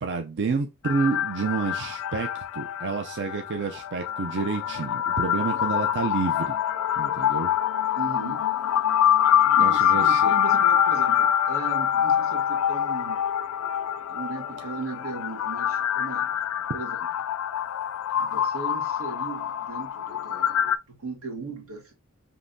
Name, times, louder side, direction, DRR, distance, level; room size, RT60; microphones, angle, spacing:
voice 1, 0.0-6.5 7.0-7.5 9.5-10.3, right 4 dB, 55° right, 0.5 m, -29 dB
sound 1, 0.8-20.8, left 9 dB, 70° left, 0.3 m, -25 dB
voice 2, 8.0-8.4 9.5-13.2 14.1-16.3 16.7-17.0 18.1-21.9, right 4 dB, 70° right, 1.5 m, -37 dB
5.2 x 2.9 x 2.6 m
head